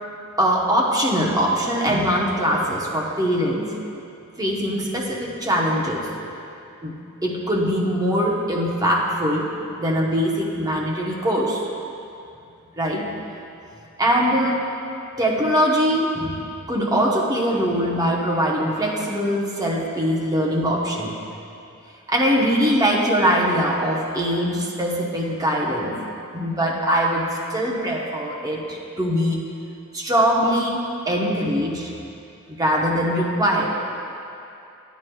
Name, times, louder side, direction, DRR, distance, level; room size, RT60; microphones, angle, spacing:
voice 1, 0.4-3.7 4.3-6.1 6.8-7.0 7.2-9.5 9.8-11.7 12.8-13.1 14.0-14.7 15.2-16.4 16.7-21.1 22.1-26.0 26.3-27.2 27.5-29.4 29.9-31.9 32.5-33.7, equal, 15° right, -3 dB, 0.9 m, -22 dB
10.5 x 9.2 x 2.3 m, 2.7 s
head